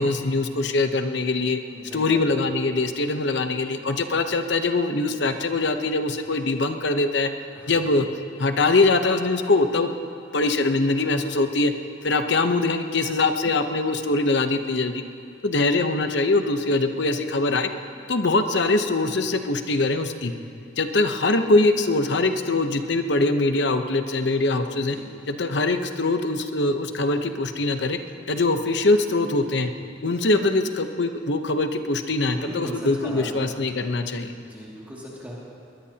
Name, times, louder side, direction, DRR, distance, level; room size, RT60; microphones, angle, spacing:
voice 1, 0.0-1.6 1.9-7.3 7.7-8.1 8.4-9.9 10.3-11.7 12.0-14.9 15.4-17.7 18.1-20.3 20.8-25.0 25.3-28.0 28.3-29.7 30.0-34.3, left 2 dB, 65° left, 7 dB, 0.9 m, -22 dB
voice 2, 1.7-2.4 7.5-8.0 24.7-25.1 32.3-33.6 34.3-35.3, equal, 10° right, -6 dB, 2.3 m, -38 dB
21.5 x 21.0 x 2.9 m, 2.5 s
head